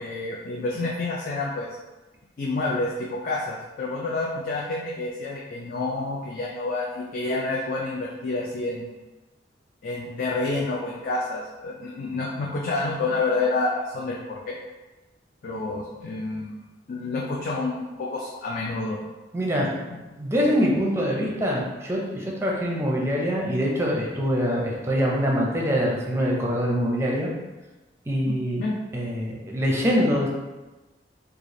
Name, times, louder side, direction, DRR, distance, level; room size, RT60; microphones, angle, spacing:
voice 1, 0.0-1.7 2.4-9.0 9.8-14.6 15.4-16.6 16.9-19.0 19.9-20.0 28.3-28.8, left 3 dB, 50° left, -3 dB, 0.4 m, -29 dB
voice 2, 19.3-19.7 20.2-27.3 28.1-28.6 28.9-30.3, equal, 15° right, -3 dB, 0.5 m, -24 dB
3.7 x 2.4 x 3.2 m, 1.1 s
head